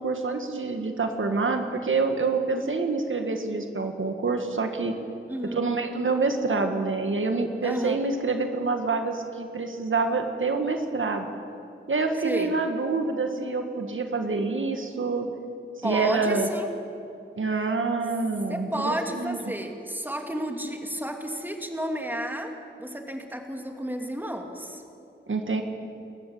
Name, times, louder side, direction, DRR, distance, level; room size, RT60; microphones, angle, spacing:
voice 1, 0.0-4.9 5.4-11.3 11.9-15.3 15.8-16.5 17.4-19.4 25.3-25.6, right 3 dB, 70° right, 5 dB, 1.8 m, -27 dB
voice 2, 5.3-5.6 7.6-8.0 12.2-12.6 15.8-16.7 18.5-24.8, right 1 dB, 10° right, 4 dB, 2.8 m, -32 dB
29.5 x 14.5 x 8.6 m, 2.6 s
wide cardioid pair, 55°, 21 cm